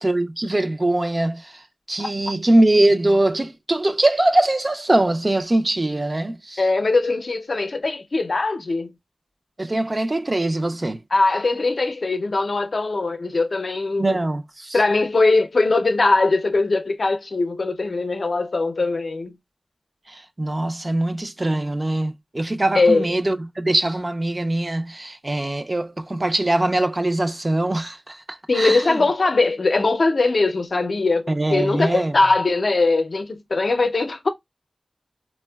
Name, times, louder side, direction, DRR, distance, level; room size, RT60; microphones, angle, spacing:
voice 1, 0.0-6.7 9.6-11.0 14.0-14.8 20.1-29.1 31.3-32.2, right 1 dB, 35° right, 0.4 m, -22 dB
voice 2, 6.6-8.9 11.1-14.2 14.7-19.3 22.7-23.1 28.5-34.3, left 3 dB, 75° left, 0.5 m, -21 dB
4.3 x 2.1 x 2.2 m
wide cardioid pair, 70°, 0 cm